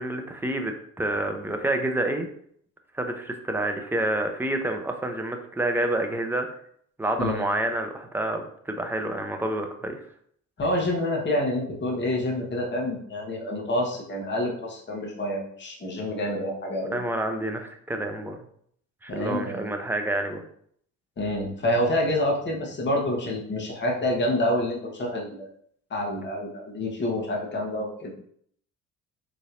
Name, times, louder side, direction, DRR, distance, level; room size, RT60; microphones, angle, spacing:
voice 1, 0.0-2.3 2.9-6.5 7.0-10.0 16.9-18.4 19.0-20.4, right 1 dB, 5° right, 4 dB, 0.6 m, -28 dB
voice 2, 10.6-17.0 19.1-19.7 21.2-25.5 25.9-28.1, left 1 dB, 25° left, -2 dB, 1.2 m, -27 dB
3.9 x 3.1 x 2.5 m, 0.64 s
hypercardioid pair, 55°, 41 cm